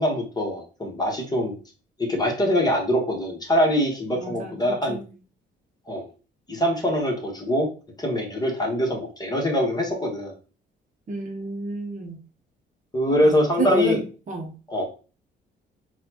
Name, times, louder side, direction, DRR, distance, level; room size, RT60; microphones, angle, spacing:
voice 1, 0.0-1.5 2.0-5.0 5.9-6.1 6.5-7.7 8.0-10.3 12.9-14.0 14.7-14.8, left 1 dB, 20° left, 0 dB, 1.2 m, -23 dB
voice 2, 4.1-5.0 11.1-12.2 13.1-14.5, right 3 dB, 40° right, 2 dB, 0.7 m, -30 dB
4.0 x 2.3 x 2.8 m, 0.35 s
cardioid pair, 90°, 20 cm